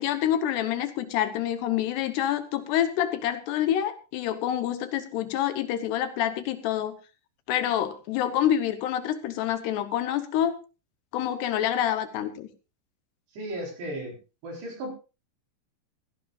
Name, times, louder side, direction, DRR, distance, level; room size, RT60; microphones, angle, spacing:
voice 1, 0.0-7.0 7.5-10.6 11.1-12.5, left 11 dB, 75° left, 10 dB, 2.7 m, -27 dB
voice 2, 13.3-14.2 14.4-14.9, right 1 dB, 60° right, 0 dB, 6.3 m, -35 dB
16.5 x 16.0 x 2.5 m, 0.31 s
omnidirectional pair, 5.6 m